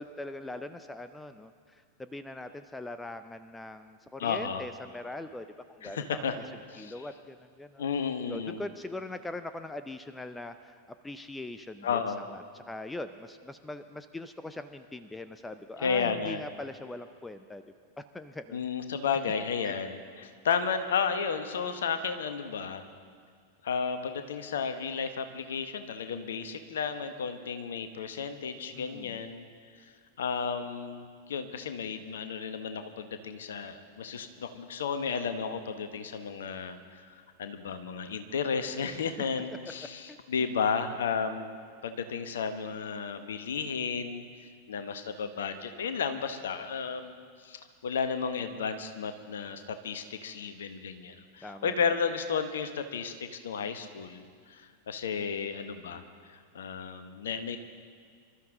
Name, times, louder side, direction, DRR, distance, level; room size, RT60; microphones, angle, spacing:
voice 1, 0.0-6.4 6.8-7.9 8.3-12.0 12.3-17.6 18.0-18.6 19.6-19.7 28.7-29.2 40.1-40.2 51.4-52.0, left 2 dB, 10° left, 11 dB, 0.6 m, -41 dB
voice 2, 4.2-4.6 5.8-6.4 6.7-6.9 7.8-8.6 11.8-12.2 15.8-16.4 18.5-22.9 23.6-29.5 29.8-29.9 30.2-41.6 41.8-44.2 44.7-56.0 56.3-57.6, left 6 dB, 60° left, 9 dB, 1.1 m, -33 dB
26.0 x 13.0 x 3.8 m, 2.1 s
figure-of-eight pair, 90°, 0 cm